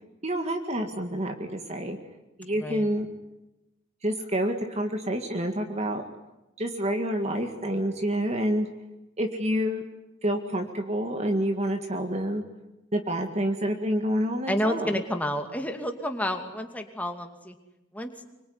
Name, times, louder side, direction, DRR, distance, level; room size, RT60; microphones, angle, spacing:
voice 1, 0.2-2.0 2.4-3.1 4.0-6.0 6.6-8.7 9.2-9.8 10.2-12.4 12.9-15.0, equal, 30° right, 4 dB, 2.1 m, -28 dB
voice 2, 2.6-2.9 14.5-17.6 17.9-18.1, equal, 5° left, 5 dB, 2.5 m, -30 dB
25.0 x 23.5 x 9.7 m, 0.96 s
head